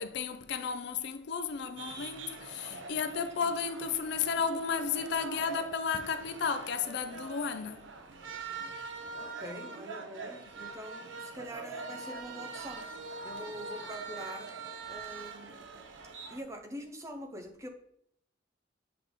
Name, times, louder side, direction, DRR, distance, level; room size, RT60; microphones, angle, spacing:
voice 1, 0.0-7.9, left 6 dB, 60° left, 0.4 m, -33 dB
sound 1, 1.8-16.4, right 4 dB, 80° right, 0.7 m, -43 dB
voice 2, 9.1-12.9 13.2-14.5 14.9-15.7 16.3-17.7, equal, 15° right, 0.7 m, -44 dB
7.7 x 3.4 x 3.6 m
head